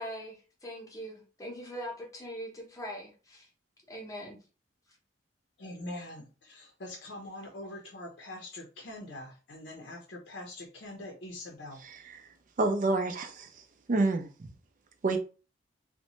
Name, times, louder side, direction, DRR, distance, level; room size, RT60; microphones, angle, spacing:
voice 1, 0.0-3.5 3.9-4.4, equal, 20° left, 0.7 m, -41 dB
voice 2, 5.6-11.8, left 1 dB, 70° left, 0.6 m, -43 dB
voice 3, 12.6-13.5 13.9-14.5 15.0-15.2, right 2 dB, 45° right, 0.4 m, -27 dB
2.6 x 2.1 x 2.9 m
head